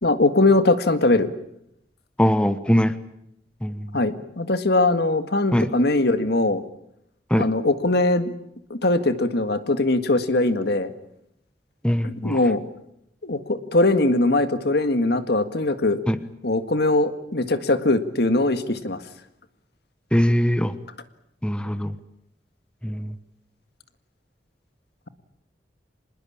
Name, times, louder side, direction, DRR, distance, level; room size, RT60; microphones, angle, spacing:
voice 1, 0.0-1.3 3.9-6.6 7.3-8.3 8.7-10.9 12.0-12.6 13.2-16.0 16.4-19.0, left 2 dB, 65° left, 10 dB, 1.9 m, -21 dB
voice 2, 2.2-2.9 3.6-3.9 5.5-5.7 7.3-7.5 11.8-12.4 16.1-16.2 20.1-20.7 21.4-21.9 22.8-23.1, equal, 5° left, 12 dB, 1.1 m, -21 dB
26.5 x 20.5 x 8.7 m, 0.78 s
head